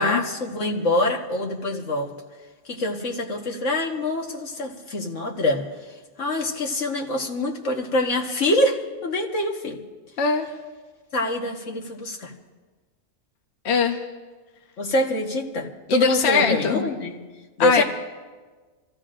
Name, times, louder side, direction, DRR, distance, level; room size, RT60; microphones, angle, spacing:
voice 1, 0.0-2.1 2.7-5.7 6.2-9.8 11.1-12.3 14.8-17.2 17.6-17.8, left 1 dB, 85° left, 1 dB, 1.8 m, -25 dB
voice 2, 10.2-10.5 13.6-14.0 15.9-16.8 17.6-17.8, left 5 dB, 65° left, 4 dB, 1.1 m, -21 dB
27.5 x 14.0 x 2.5 m, 1.3 s
omnidirectional pair, 1.2 m